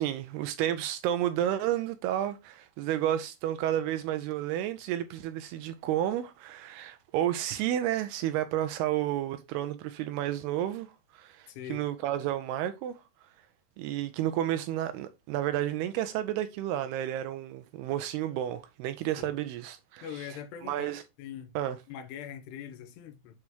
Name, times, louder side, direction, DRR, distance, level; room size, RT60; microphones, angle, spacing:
voice 1, 0.0-13.0 13.8-20.3 20.6-21.0 21.6-21.8, right 12 dB, 85° right, 2.4 m, -31 dB
voice 2, 11.5-11.8 19.2-19.4 20.0-20.9 21.2-21.6 21.9-23.4, left 9 dB, 90° left, 2.9 m, -42 dB
8.0 x 4.8 x 2.8 m
omnidirectional pair, 4.8 m